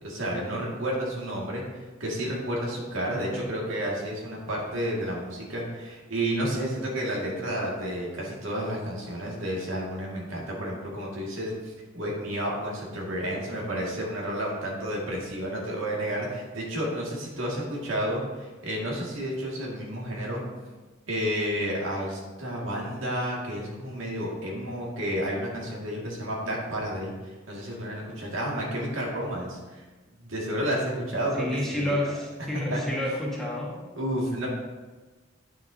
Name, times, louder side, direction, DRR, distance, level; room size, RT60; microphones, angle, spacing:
voice 1, 0.0-1.6 2.0-20.4 21.1-29.8 30.2-32.0 32.7-32.8 34.0-34.5, equal, 85° right, -3 dB, 2.0 m, -31 dB
voice 2, 3.1-3.5 31.3-33.7, left 1 dB, ahead, -5 dB, 1.5 m, -30 dB
9.4 x 7.0 x 2.7 m, 1.3 s
head